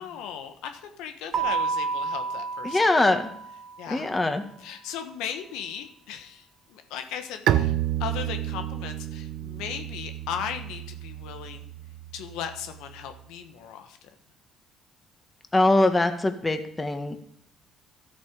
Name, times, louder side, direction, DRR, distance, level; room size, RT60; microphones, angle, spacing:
voice 1, 0.0-2.9 3.8-4.1 4.6-11.7 12.1-14.1, left 8 dB, 80° left, 7 dB, 1.2 m, -37 dB
Keyboard (musical), 1.3-3.9, right 5 dB, 45° right, 2.6 m, -30 dB
voice 2, 2.6-3.2 3.9-4.4 15.5-17.2, left 2 dB, 20° left, 7 dB, 1.8 m, -22 dB
Bowed string instrument, 7.5-13.0, right 12 dB, 70° right, 0.7 m, -30 dB
13.5 x 8.3 x 5.2 m, 0.69 s
supercardioid pair, 60°, 0 cm